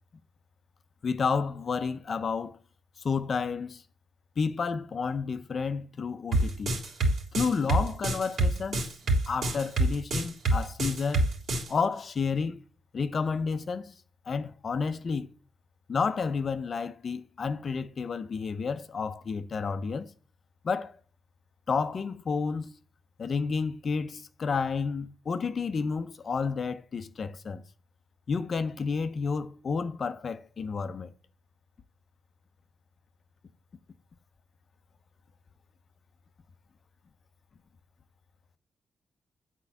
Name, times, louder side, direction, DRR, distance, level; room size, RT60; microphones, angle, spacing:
voice 1, 1.0-2.6 3.0-3.8 4.4-6.8 7.3-8.9 9.3-11.2 11.7-12.6 12.9-13.9 14.3-15.3 15.9-20.1 20.6-21.0 21.7-22.7 23.2-27.6 28.3-31.1, left 5 dB, 45° left, 0.7 m, -30 dB
sound 1, 6.3-11.7, right 1 dB, 65° right, 3.4 m, -26 dB
8.6 x 4.6 x 7.0 m
cardioid pair, 120°, 0 cm